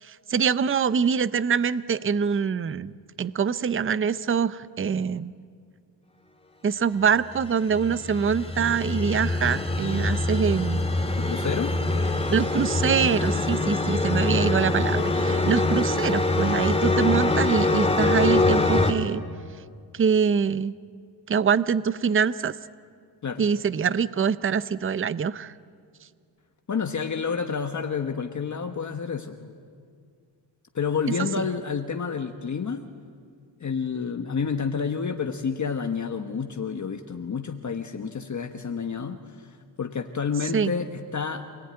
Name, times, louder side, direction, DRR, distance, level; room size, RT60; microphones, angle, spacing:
voice 1, 0.0-2.9 3.2-5.3 6.6-11.1 12.3-19.2 19.9-20.7 21.3-22.5 23.4-25.5 31.4-31.5 40.5-40.7, right 6 dB, 30° right, 16 dB, 0.7 m, -24 dB
sound 1, 7.3-18.9, left 2 dB, 15° left, 2.0 m, -24 dB
voice 2, 11.2-11.8 23.2-23.4 26.7-29.5 30.7-32.8 33.6-39.5 39.8-41.4, left 6 dB, 40° left, 5 dB, 1.4 m, -29 dB
27.5 x 19.0 x 9.7 m, 2.1 s
cardioid pair, 105°, 45 cm